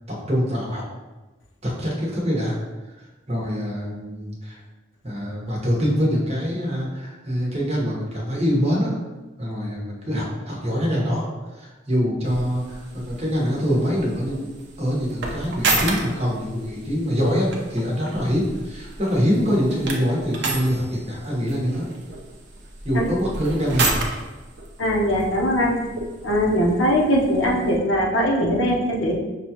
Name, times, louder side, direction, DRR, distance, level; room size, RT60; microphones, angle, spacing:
voice 1, 0.1-0.8 1.6-2.6 3.0-4.6 5.0-8.9 9.4-11.2 11.6-14.5 14.8-21.8 22.8-23.9, equal, 35° right, -4 dB, 1.1 m, -24 dB
sound 1, 12.2-27.8, right 2 dB, 60° right, 0.7 m, -32 dB
voice 2, 24.8-25.7 26.2-29.2, equal, 85° left, -1 dB, 0.8 m, -20 dB
5.9 x 2.3 x 2.9 m, 1.1 s
head